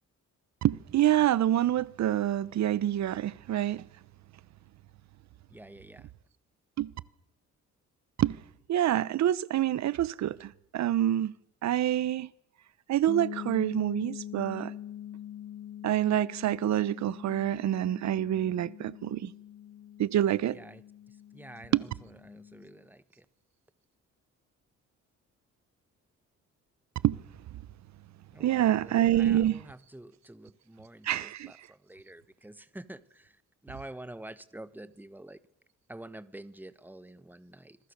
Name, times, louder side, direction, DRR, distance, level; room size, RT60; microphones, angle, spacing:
voice 1, 0.6-3.8 6.8-6.9 8.2-8.4 8.7-11.3 11.6-12.3 12.9-14.7 15.8-19.3 20.0-20.6 21.7-21.8 27.0-27.2 28.4-29.6 31.0-31.5, right 12 dB, 65° right, 0.9 m, -27 dB
voice 2, 5.5-6.1 20.5-20.8 21.1-23.2 28.3-35.4 35.9-37.8, right 1 dB, 5° right, 1.4 m, -48 dB
sound 1, 13.1-22.8, left 10 dB, 50° left, 1.2 m, -44 dB
26.0 x 22.0 x 6.7 m
cardioid pair, 90°, 30 cm